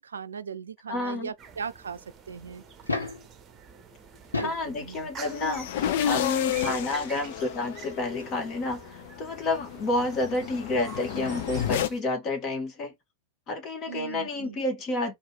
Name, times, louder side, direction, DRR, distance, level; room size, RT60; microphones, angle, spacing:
voice 1, 0.0-2.6 4.4-5.1 13.9-14.6, right 6 dB, 70° right, 0.5 m, -39 dB
voice 2, 0.9-1.3 4.4-5.8 6.0-12.9 13.5-15.2, left 2 dB, 35° left, 1.9 m, -30 dB
sound 1, 1.4-12.0, right 7 dB, 25° right, 0.9 m, -47 dB
sound 2, 2.7-3.3 4.1-4.7 6.0-6.1 7.9-8.0 8.2-8.3, left 3 dB, 80° left, 1.3 m, -31 dB
sound 3, 5.2-11.9, left 10 dB, 55° left, 0.6 m, -32 dB
4.7 x 2.7 x 3.5 m
figure-of-eight pair, 90°, 0 cm